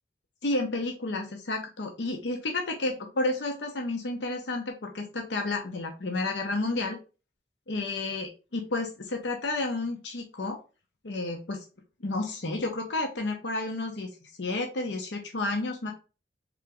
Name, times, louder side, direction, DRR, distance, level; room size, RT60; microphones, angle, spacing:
voice 1, 0.4-7.0 7.7-10.6 11.0-11.6 12.0-14.1 14.4-15.9, left 2 dB, 85° left, 2 dB, 0.8 m, -31 dB
3.8 x 3.6 x 3.5 m, 0.32 s
head